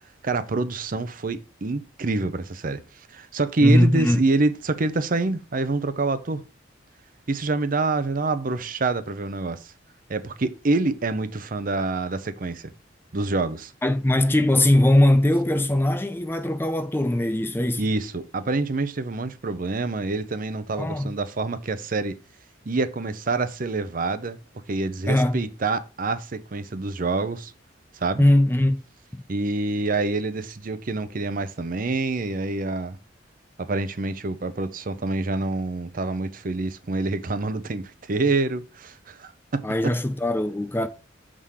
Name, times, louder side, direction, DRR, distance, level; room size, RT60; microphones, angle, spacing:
voice 1, 0.2-2.8 3.1-6.4 7.3-9.6 10.1-12.7 13.1-13.7 17.8-22.2 22.7-24.4 24.7-27.5 28.0-28.2 29.3-33.0 33.6-39.9, right 3 dB, 45° right, 0.7 m, -26 dB
voice 2, 3.6-4.2 13.8-17.8 20.8-21.1 25.1-25.4 28.2-28.8 29.1-29.2 39.6-40.9, left 1 dB, 10° left, 0.5 m, -20 dB
7.1 x 3.7 x 6.4 m
head